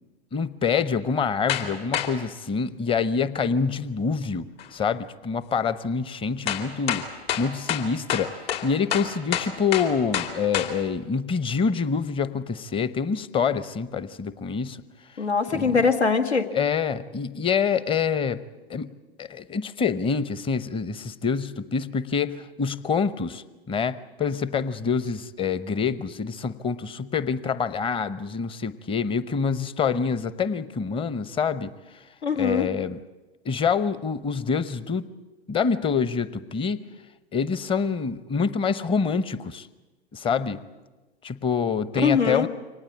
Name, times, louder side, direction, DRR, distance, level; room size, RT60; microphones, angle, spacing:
voice 1, 0.3-7.1 7.4-14.8 15.5-15.8 16.5-18.4 18.7-18.9 19.2-31.7 32.4-33.0 33.4-35.1 35.5-36.8 37.3-39.7 40.1-40.6 41.2-42.5, left 6 dB, 15° left, 15 dB, 0.8 m, -26 dB
sound 1, 1.5-1.7 1.9-2.1 4.6-4.7 6.5-10.7, left 10 dB, 60° left, 2.8 m, -27 dB
voice 2, 15.2-16.5 32.2-32.7 42.0-42.5, left 5 dB, 85° left, 6 dB, 2.0 m, -22 dB
24.0 x 18.5 x 8.7 m, 1.2 s
hypercardioid pair, 105°, 33 cm